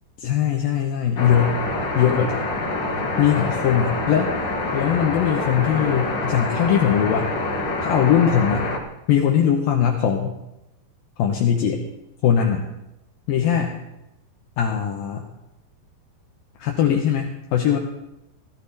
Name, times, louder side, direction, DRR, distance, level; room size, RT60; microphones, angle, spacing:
voice 1, 0.2-1.6 2.0-2.3 3.2-4.3 4.7-7.3 7.8-8.7 9.1-10.3 11.2-11.8 12.2-12.6 13.3-13.7 14.6-15.2 16.6-17.8, left 9 dB, 70° left, 1 dB, 2.5 m, -20 dB
sound 1, 1.2-8.8, left 2 dB, 45° left, 1.6 m, -26 dB
17.0 x 13.5 x 4.1 m, 0.90 s
omnidirectional pair, 4.8 m